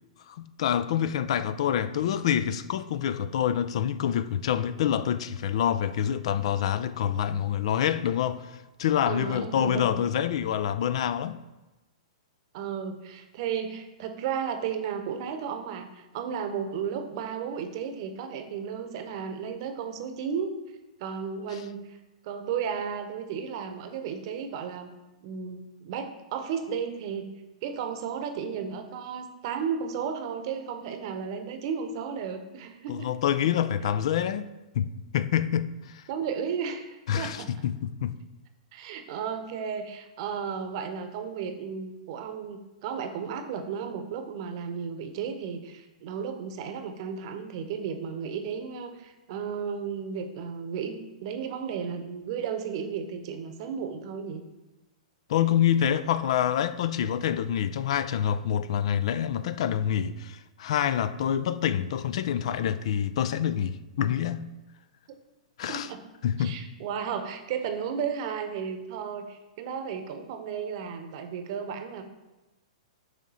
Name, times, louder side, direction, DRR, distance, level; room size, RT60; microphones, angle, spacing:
voice 1, 0.3-11.4 32.9-34.5 34.8-36.0 37.1-38.2 55.3-64.5 65.6-65.9 66.2-66.6, left 9 dB, 55° left, 0.4 m, -27 dB
voice 2, 9.1-10.0 12.5-20.5 21.0-22.0 22.2-24.9 25.2-27.3 27.6-33.1 36.1-37.5 38.7-54.4 65.7-66.0 66.4-72.0, right 7 dB, 50° right, 0.9 m, -34 dB
6.3 x 3.7 x 5.6 m
hypercardioid pair, 115°, 4 cm